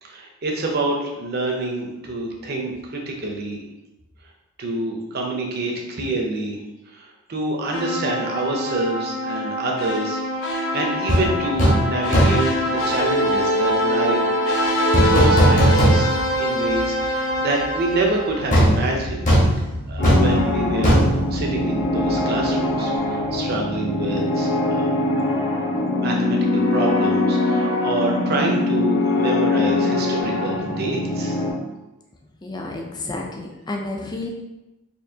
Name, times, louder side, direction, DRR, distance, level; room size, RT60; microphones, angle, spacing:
voice 1, 0.0-3.6 4.6-6.6 6.9-14.4 15.0-16.1 16.4-19.3 19.6-24.9 26.0-31.4, right 2 dB, 45° right, 0 dB, 0.7 m, -27 dB
sound 1, 7.7-19.0, equal, 75° left, 0.8 m, -23 dB
sound 2, 11.1-11.3 11.6-11.9 12.1-12.5 14.9-16.4 16.7-16.8 18.5-22.2 22.4-22.6, equal, 35° left, 1.1 m, -18 dB
sound 3, 20.0-31.5, left 2 dB, 55° left, 1.2 m, -22 dB
voice 2, 32.4-34.3, left 2 dB, 20° left, 1 dB, 0.4 m, -30 dB
4.3 x 2.8 x 2.8 m, 0.99 s
head